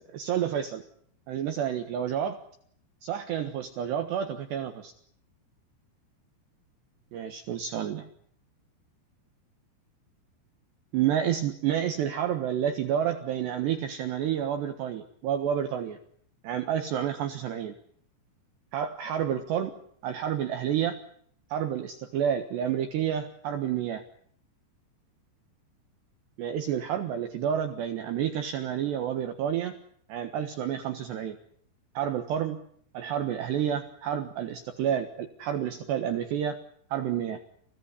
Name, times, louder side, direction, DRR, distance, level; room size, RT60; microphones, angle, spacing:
voice 1, 0.1-0.8 1.3-2.4 3.0-4.9 7.1-8.1 10.9-16.0 16.4-17.8 18.7-19.7 20.0-21.0 21.5-24.0 26.4-29.7 30.1-31.4 31.9-32.6 32.9-36.6 36.9-37.4, right 9 dB, 65° right, 7 dB, 3.2 m, -29 dB
29.5 x 17.0 x 9.9 m, 0.65 s
omnidirectional pair, 6.0 m